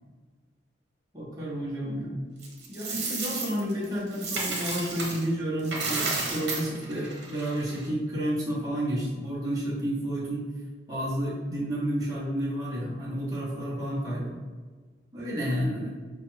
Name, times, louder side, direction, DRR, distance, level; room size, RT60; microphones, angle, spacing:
voice 1, 1.1-2.2 2.7-10.5 10.9-14.4 15.1-15.9, equal, 20° right, -7 dB, 0.9 m, -30 dB
Coin (dropping), 2.4-5.3 5.6-7.9, right 3 dB, 65° right, 1.0 m, -32 dB
5.2 x 2.3 x 3.1 m, 1.5 s
head